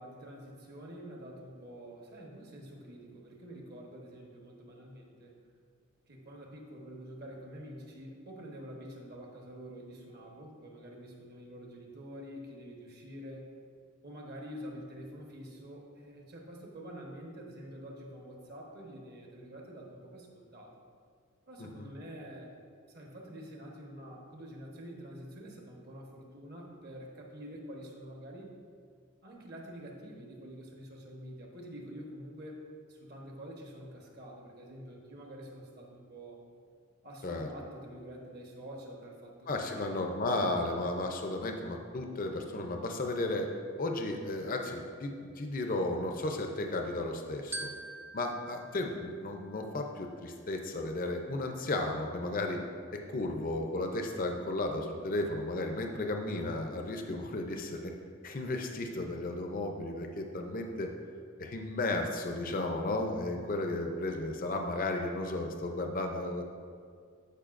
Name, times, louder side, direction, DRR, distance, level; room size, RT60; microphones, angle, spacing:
voice 1, 0.0-5.4 6.1-13.5 14.0-20.7 21.5-22.5 22.9-28.6 29.2-32.6 32.9-36.4 37.0-40.0, equal, 50° right, 0 dB, 1.1 m, -47 dB
voice 2, 39.5-43.5 43.8-47.7 48.1-52.6 52.9-57.9 58.2-60.9 61.4-66.4, left 2 dB, 40° left, 3 dB, 0.6 m, -34 dB
Glockenspiel, 47.5-50.0, right 2 dB, 10° right, 0.4 m, -45 dB
13.5 x 5.3 x 2.5 m, 2.2 s
head